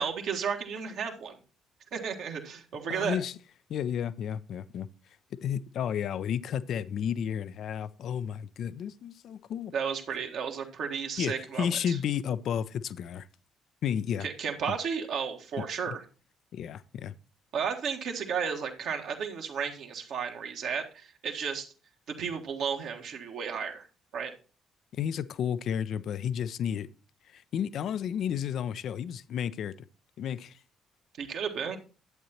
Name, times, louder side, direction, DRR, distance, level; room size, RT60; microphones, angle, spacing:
voice 1, 0.0-1.4 1.9-3.2 9.7-12.0 14.2-16.0 17.5-21.7 22.1-23.9 24.1-24.3 31.2-31.8, right 6 dB, 60° right, 1.4 m, -33 dB
voice 2, 2.9-3.4 3.7-4.9 5.4-9.7 11.2-13.3 13.8-14.3 15.6-15.7 16.5-17.1 24.9-26.9 27.3-29.7 30.2-30.6, left 8 dB, 60° left, 0.4 m, -32 dB
11.0 x 8.5 x 2.9 m
figure-of-eight pair, 45°, 0 cm